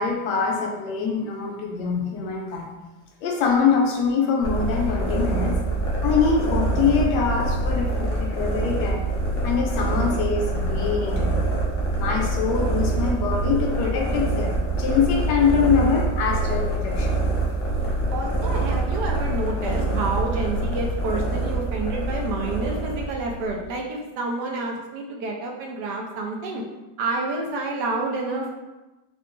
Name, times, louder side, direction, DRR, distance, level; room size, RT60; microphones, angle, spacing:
voice 1, 0.0-2.7 3.2-5.6 6.0-9.1 9.4-11.5 12.0-17.3, left 5 dB, 85° left, 1 dB, 1.2 m, -24 dB
sound 1, 4.4-23.7, right 2 dB, 60° left, 0.5 m, -25 dB
voice 2, 18.1-26.6 27.0-28.5, right 3 dB, 80° right, 0 dB, 1.1 m, -29 dB
3.6 x 2.3 x 2.4 m, 1.1 s
omnidirectional pair, 1.8 m